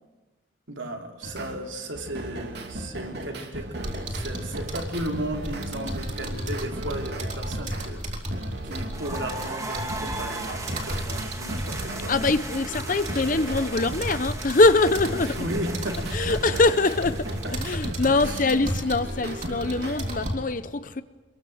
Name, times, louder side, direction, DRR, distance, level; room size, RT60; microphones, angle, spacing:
voice 1, 0.7-8.0 8.6-12.1 15.4-16.4 17.4-17.8 18.1-18.5, right 1 dB, 80° right, 3 dB, 3.4 m, -35 dB
sound 1, 1.2-1.6 1.9-7.9 8.3-14.3 14.7-20.3, right 1 dB, 60° right, 2.9 m, -37 dB
sound 2, 3.8-20.3, right 1 dB, 40° right, 4.0 m, -34 dB
sound 3, 8.9-18.7, right 2 dB, 15° right, 2.0 m, -38 dB
voice 2, 12.1-15.3 16.1-21.0, left 3 dB, 45° left, 12 dB, 0.7 m, -23 dB
26.5 x 22.0 x 7.9 m, 1.2 s
head